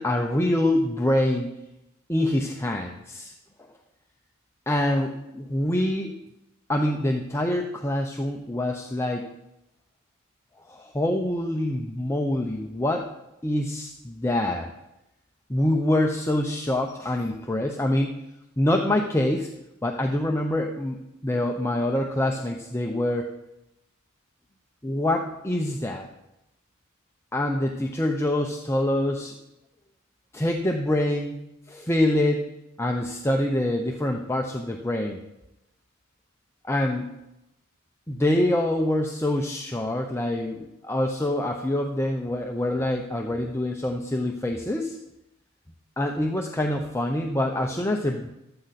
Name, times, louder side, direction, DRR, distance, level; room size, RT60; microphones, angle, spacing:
voice 1, 0.0-1.5 2.1-3.3 3.6-3.7 4.7-6.2 6.7-9.3 10.7-13.1 13.4-14.7 15.5-18.1 18.6-19.5 19.8-21.0 21.2-23.3 24.8-26.1 27.3-29.3 30.3-31.4 31.7-32.5 32.8-35.2 36.7-37.1 38.1-45.0 46.0-48.3, left 1 dB, 10° left, 2 dB, 0.7 m, -25 dB
14.5 x 13.0 x 4.2 m, 0.89 s
head